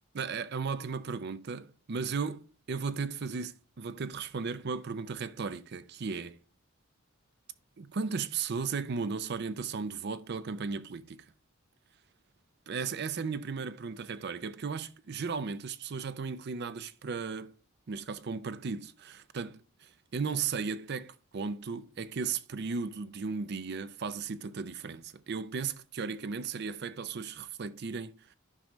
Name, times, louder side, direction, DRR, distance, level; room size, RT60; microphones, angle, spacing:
voice 1, 0.1-6.4 7.8-11.3 12.7-17.5 17.9-28.3, right 5 dB, 55° right, 0.5 m, -36 dB
11.0 x 5.1 x 3.1 m
head